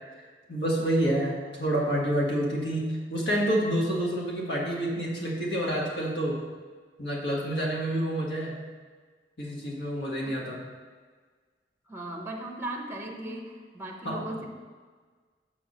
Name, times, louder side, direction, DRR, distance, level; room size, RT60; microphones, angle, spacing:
voice 1, 0.5-6.4 7.0-8.6 9.4-10.6 14.0-14.2, right 1 dB, 70° left, -3 dB, 1.6 m, -28 dB
voice 2, 11.9-14.5, right 1 dB, 10° right, 1 dB, 0.7 m, -37 dB
5.8 x 4.6 x 6.5 m, 1.5 s
head